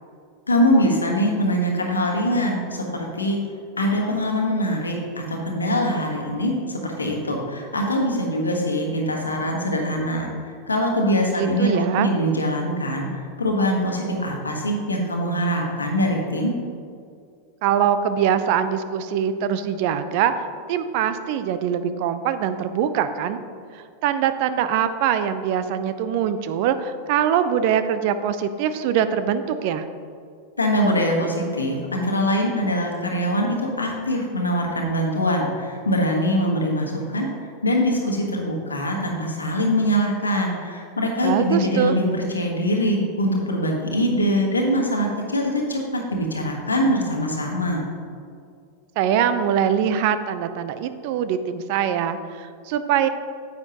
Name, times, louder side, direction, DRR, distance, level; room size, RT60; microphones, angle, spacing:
voice 1, 0.5-3.4 3.8-16.5 30.6-47.9, equal, 85° left, 0 dB, 1.3 m, -23 dB
voice 2, 11.3-12.1 17.6-20.4 20.7-23.4 23.7-29.9 41.2-42.0 49.0-53.1, right 9 dB, 55° right, 11 dB, 0.5 m, -23 dB
9.6 x 8.2 x 2.9 m, 2.3 s
figure-of-eight pair, 90°, 0 cm